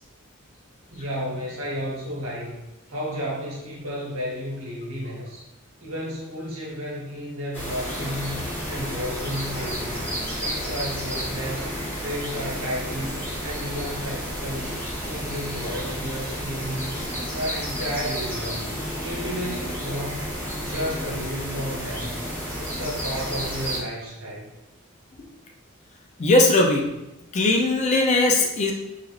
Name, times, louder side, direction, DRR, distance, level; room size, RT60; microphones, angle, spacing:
voice 1, 0.9-5.4 5.8-11.7 12.0-14.7 15.0-16.9 17.3-18.7 19.0-20.3 20.6-22.3 22.5-24.5, equal, 65° right, -4 dB, 0.9 m, -32 dB
sound 1, 7.5-23.8, equal, 10° left, 0.8 m, -31 dB
voice 2, 26.2-26.9 27.3-28.7, left 2 dB, 35° left, 1 dB, 0.3 m, -19 dB
3.1 x 2.4 x 2.4 m, 0.92 s
head